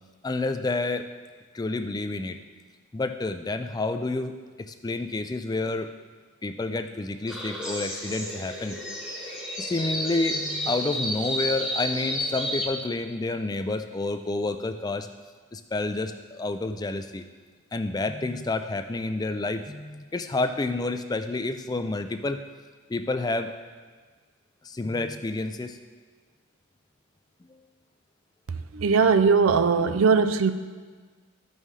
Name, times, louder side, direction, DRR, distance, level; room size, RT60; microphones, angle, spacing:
voice 1, 0.2-1.1 1.5-2.4 2.9-4.3 4.7-5.9 6.4-8.8 9.6-15.1 15.5-17.2 17.7-22.4 22.9-23.5 24.6-25.8, left 2 dB, 20° left, 8 dB, 0.3 m, -29 dB
sound 1, 7.3-12.7, equal, 5° right, 1.0 m, -31 dB
voice 2, 28.7-30.5, right 5 dB, 70° right, 11 dB, 0.5 m, -20 dB
14.0 x 5.4 x 3.2 m, 1.5 s
head